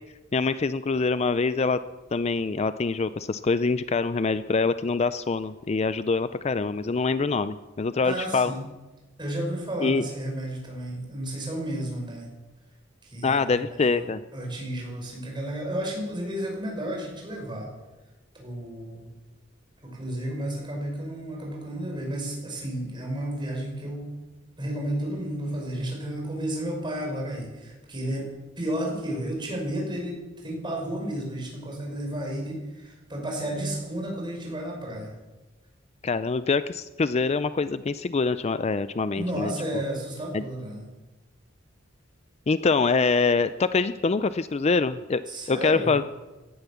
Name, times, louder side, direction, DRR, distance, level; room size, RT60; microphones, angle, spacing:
voice 1, 0.3-1.8 2.1-8.5 9.8-10.0 13.2-14.2 36.0-39.8 40.3-40.4 42.5-45.2 45.5-46.0, left 4 dB, 35° left, 13 dB, 0.4 m, -25 dB
voice 2, 8.0-8.6 9.2-12.3 13.0-17.7 18.3-19.1 19.8-24.1 24.6-28.3 28.6-35.1 39.2-40.9 45.3-46.0, right 1 dB, 25° right, 0 dB, 5.3 m, -32 dB
17.5 x 12.0 x 7.1 m, 1.1 s
head